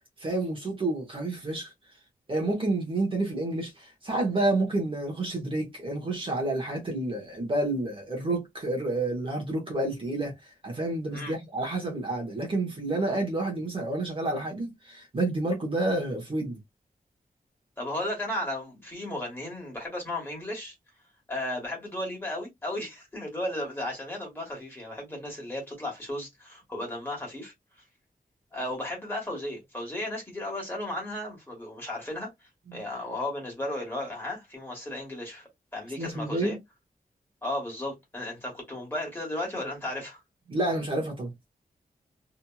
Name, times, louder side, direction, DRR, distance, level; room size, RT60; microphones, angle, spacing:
voice 1, 0.2-1.7 2.3-10.3 10.6-16.6 32.7-32.8 36.0-36.5 40.5-41.3, right 2 dB, 35° right, 1.0 m, -29 dB
voice 2, 17.8-20.7 21.3-27.5 28.5-32.3 32.7-36.6 37.4-40.2, left 1 dB, 15° left, 1.5 m, -34 dB
2.9 x 2.6 x 2.2 m
wide cardioid pair, 175°, 15 cm